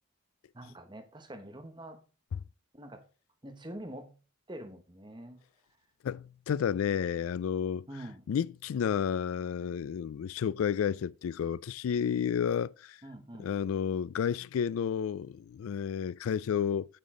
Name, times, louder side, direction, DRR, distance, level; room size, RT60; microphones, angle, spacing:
voice 1, 0.5-2.0 2.7-3.1 3.4-4.2 4.5-5.4 7.9-8.2 13.0-13.5, right 1 dB, 20° right, 1.1 m, -45 dB
voice 2, 6.0-7.9 8.3-13.0 13.4-17.0, left 8 dB, 85° left, 0.3 m, -31 dB
9.0 x 6.8 x 3.8 m
head